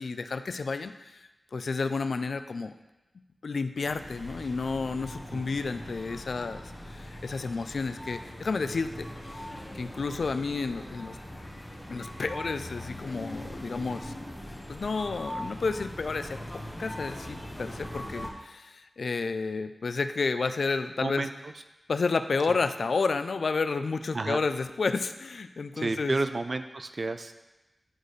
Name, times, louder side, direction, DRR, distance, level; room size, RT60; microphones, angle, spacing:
voice 1, 0.0-2.7 3.4-9.5 9.7-11.2 11.9-14.1 14.7-16.4 16.8-21.3 21.9-26.2, left 4 dB, 75° left, 10 dB, 0.3 m, -31 dB
sound 1, 3.8-18.3, equal, 15° left, 1.3 m, -41 dB
voice 2, 21.0-21.5 24.1-24.4 25.7-27.3, right 3 dB, 55° right, 9 dB, 0.4 m, -31 dB
11.0 x 4.0 x 3.2 m, 1.0 s
wide cardioid pair, 75°, 0 cm